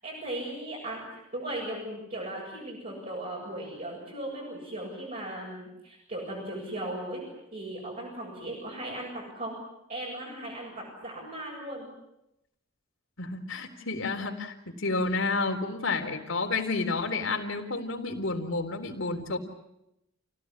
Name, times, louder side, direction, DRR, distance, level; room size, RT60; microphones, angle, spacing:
voice 1, 0.0-7.2 7.5-9.6 9.9-10.7 11.0-11.9, right 1 dB, 40° right, -5 dB, 7.7 m, -37 dB
voice 2, 13.2-19.4, left 3 dB, 70° left, 3 dB, 3.9 m, -30 dB
29.0 x 17.5 x 10.0 m, 0.85 s
head